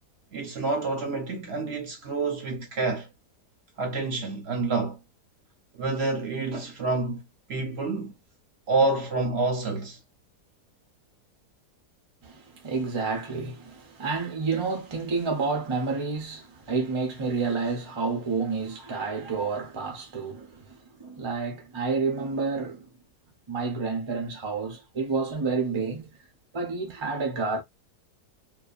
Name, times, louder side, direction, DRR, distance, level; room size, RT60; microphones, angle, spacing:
voice 1, 0.3-3.1 3.8-5.0 5.8-7.2 7.5-8.2 8.7-10.0, right 3 dB, 50° right, 0.8 m, -28 dB
voice 2, 12.2-22.9 23.5-26.1 26.5-27.6, right 4 dB, 35° right, 0.4 m, -29 dB
2.7 x 2.4 x 2.4 m
omnidirectional pair, 1.7 m